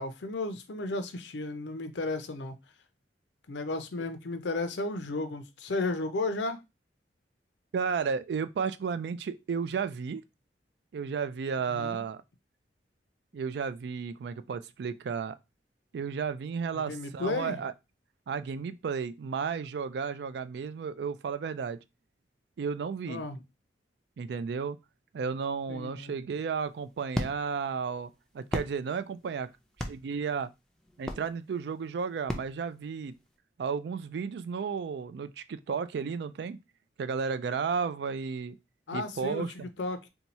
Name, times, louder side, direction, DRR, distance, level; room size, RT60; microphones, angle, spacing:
voice 1, 0.0-2.5 3.5-6.6 11.7-12.0 16.7-17.6 23.1-23.4 25.7-26.1 38.9-39.5 39.8-40.1, left 2 dB, 85° left, 0.6 m, -33 dB
voice 2, 7.7-10.2 10.9-12.2 13.3-15.4 15.9-17.7 18.3-21.8 22.6-23.2 24.2-24.8 25.1-29.5 29.9-30.5 31.0-33.1 33.6-36.6 37.0-38.6 38.9-39.7, right 6 dB, 70° right, 0.3 m, -33 dB
sound 1, 26.4-33.4, equal, 5° left, 0.4 m, -39 dB
2.7 x 2.3 x 4.1 m
head